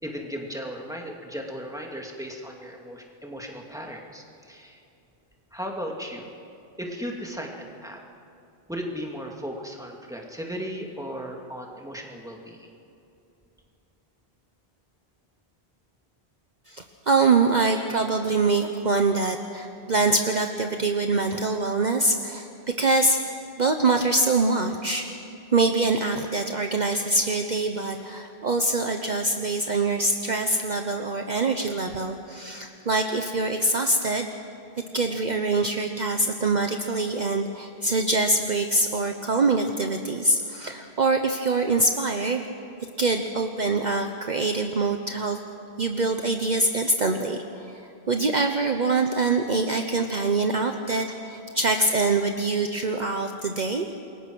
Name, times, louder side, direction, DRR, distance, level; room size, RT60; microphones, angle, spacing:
voice 1, 0.0-4.8 5.5-6.2 6.8-8.0 8.7-12.7, equal, 5° right, 0 dB, 2.5 m, -36 dB
voice 2, 16.7-23.2 23.6-25.1 25.5-34.3 34.9-42.4 43.0-45.4 45.8-47.4 48.1-53.9, right 3 dB, 45° right, 5 dB, 1.1 m, -24 dB
27.5 x 22.0 x 6.3 m, 2.7 s
omnidirectional pair, 1.0 m